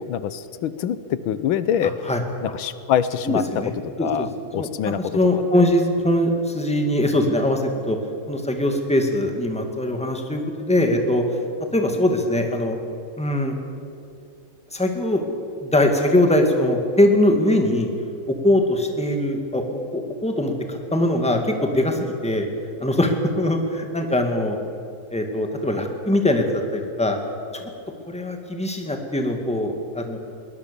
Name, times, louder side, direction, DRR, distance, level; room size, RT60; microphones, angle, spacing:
voice 1, 0.0-2.1 2.4-5.0 5.5-5.8, left 9 dB, 90° left, 14 dB, 1.7 m, -25 dB
voice 2, 3.3-3.7 4.0-4.3 4.5-8.0 8.3-11.2 11.7-12.8 13.2-13.6 14.7-15.2 15.6-17.9 18.3-22.5 22.8-24.6 25.1-27.2 27.5-27.7 28.1-30.2, left 1 dB, 5° left, 4 dB, 1.9 m, -21 dB
22.0 x 19.0 x 7.0 m, 2.6 s
omnidirectional pair, 2.2 m